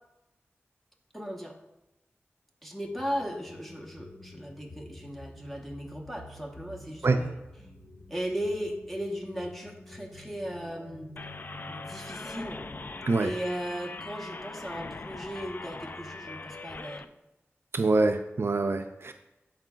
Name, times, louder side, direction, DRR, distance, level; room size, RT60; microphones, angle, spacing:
voice 1, 1.1-1.6 2.6-7.3 8.1-11.1 11.7-12.6 13.2-17.1, equal, 5° left, 1 dB, 1.2 m, -36 dB
sound 1, 2.8-13.6, left 1 dB, 25° left, 2.0 m, -49 dB
sound 2, 11.2-17.0, left 3 dB, 45° left, 0.3 m, -41 dB
voice 2, 17.7-19.1, right 3 dB, 60° right, 7 dB, 0.4 m, -25 dB
11.5 x 4.6 x 2.4 m, 0.97 s
wide cardioid pair, 60°, 5 cm